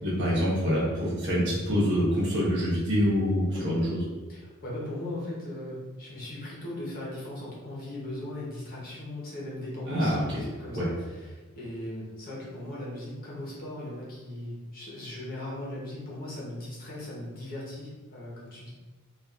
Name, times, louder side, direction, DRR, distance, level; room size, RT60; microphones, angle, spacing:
voice 1, 0.0-4.0 9.9-10.4 10.7-10.9, equal, 55° right, -7 dB, 1.2 m, -26 dB
voice 2, 4.3-18.7, left 1 dB, 40° left, -5 dB, 1.0 m, -38 dB
4.2 x 2.6 x 2.5 m, 1.3 s
head